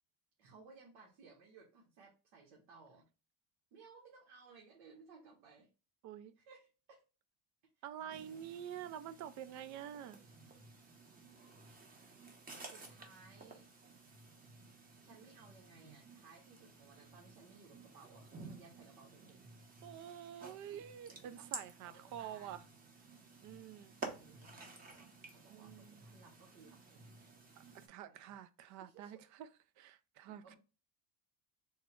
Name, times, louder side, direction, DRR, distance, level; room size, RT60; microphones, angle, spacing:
voice 1, 0.4-3.1 3.7-5.7 6.3-7.0 7.7-8.4 8.8-9.0 12.6-13.7 15.0-19.6 20.3-20.8 21.1-21.5 21.8-22.6 24.2-27.7 28.1-28.4 28.7-29.3 30.3-30.6, right 4 dB, 85° right, 1.2 m, -61 dB
voice 2, 6.0-6.3 7.8-10.2 19.8-22.6 23.4-24.0 25.5-26.0 27.6-29.5 29.8-30.6, right 10 dB, 50° right, 0.4 m, -48 dB
sound 1, 8.1-27.9, right 3 dB, 25° right, 0.7 m, -53 dB
3.5 x 2.1 x 4.3 m
cardioid pair, 140°, 37 cm